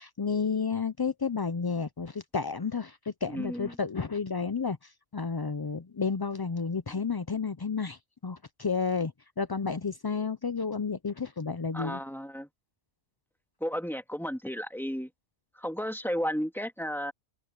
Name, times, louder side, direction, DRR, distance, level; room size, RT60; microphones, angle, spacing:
voice 1, 0.0-4.8 5.1-9.1 9.4-12.0, left 5 dB, 40° left, 0.3 m, -31 dB
voice 2, 3.3-3.8 6.9-7.0 11.7-12.5 13.6-15.1 15.5-17.1, equal, ahead, 1.9 m, -33 dB
omnidirectional pair, 1.2 m